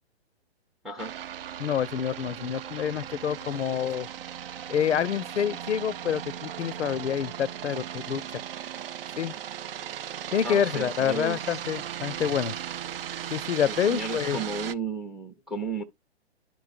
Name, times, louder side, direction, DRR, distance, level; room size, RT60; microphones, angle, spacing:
sound 1, 1.0-14.8, right 10 dB, 60° right, 0.5 m, -37 dB
voice 1, 1.6-4.1 4.7-8.4 9.1-9.3 10.3-12.6 13.3-14.4, left 8 dB, 85° left, 0.5 m, -27 dB
voice 2, 10.4-11.6 13.7-15.8, right 3 dB, ahead, 0.5 m, -34 dB
11.5 x 4.6 x 2.3 m
figure-of-eight pair, 125°, 33 cm